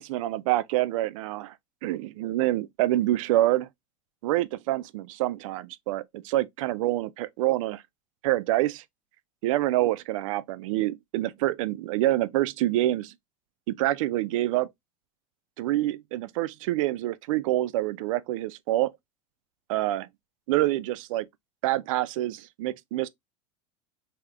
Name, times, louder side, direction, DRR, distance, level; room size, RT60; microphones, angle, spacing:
voice 1, 0.0-1.5 1.8-3.7 4.2-7.8 8.2-8.8 9.4-13.1 13.7-14.7 15.6-18.9 19.7-20.1 20.5-21.3 21.6-23.1, right 15 dB, 80° right, 0.4 m, -26 dB
3.4 x 2.8 x 2.4 m
supercardioid pair, 115°, 17 cm